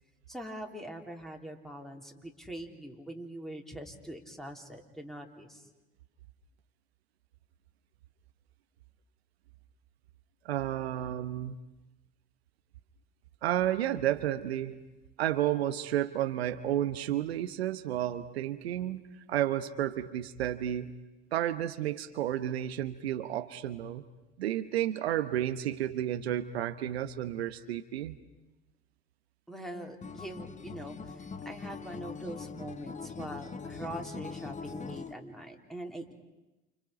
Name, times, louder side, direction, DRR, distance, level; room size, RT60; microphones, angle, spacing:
voice 1, 0.3-5.7 29.5-36.1, right 1 dB, ahead, 2 dB, 3.6 m, -43 dB
voice 2, 10.4-11.5 13.4-14.8 15.2-19.0 19.3-20.9 21.3-24.0 24.4-28.1, right 12 dB, 80° right, 11 dB, 1.0 m, -31 dB
Acoustic guitar, 30.0-35.1, left 5 dB, 25° left, 1.4 m, -42 dB
29.0 x 29.0 x 5.2 m, 1.0 s
hypercardioid pair, 70°, 31 cm